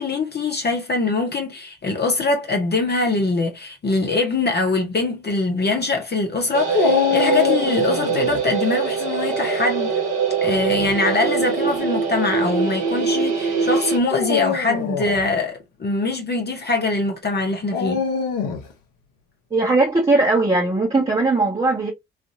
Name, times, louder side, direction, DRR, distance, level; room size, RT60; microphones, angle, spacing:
voice 1, 0.0-9.9 10.4-18.0, left 3 dB, 30° left, 0.9 m, -23 dB
sound 1, 6.5-14.0, right 5 dB, 50° right, 1.3 m, -23 dB
Dog, 6.7-8.4 10.5-11.0 11.8-11.9 14.0-15.2 17.7-18.7, left 6 dB, 65° left, 1.0 m, -24 dB
voice 2, 19.5-21.9, right 2 dB, 15° right, 1.2 m, -19 dB
3.2 x 2.5 x 2.5 m
figure-of-eight pair, 45°, 35 cm